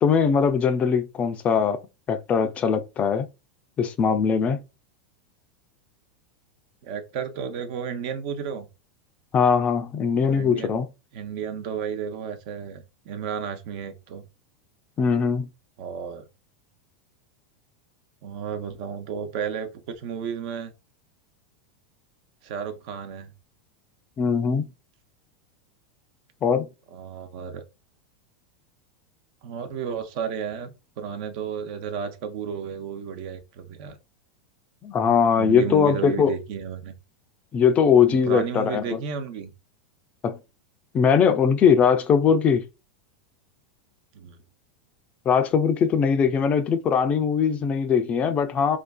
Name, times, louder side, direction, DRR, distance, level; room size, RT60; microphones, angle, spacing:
voice 1, 0.0-1.8 2.1-3.3 3.8-4.6 9.3-10.9 15.0-15.5 24.2-24.7 26.4-26.7 34.8-36.3 37.5-38.8 40.2-40.4 40.9-42.6 45.3-48.8, left 6 dB, 30° left, 0.3 m, -21 dB
voice 2, 6.8-8.7 10.3-10.8 11.1-14.3 15.8-16.2 18.2-20.7 22.4-23.3 26.9-27.6 29.4-34.0 35.4-36.9 38.1-39.5 44.1-44.4, right 7 dB, 55° right, 0.5 m, -33 dB
2.4 x 2.3 x 2.2 m
hypercardioid pair, 95°, 4 cm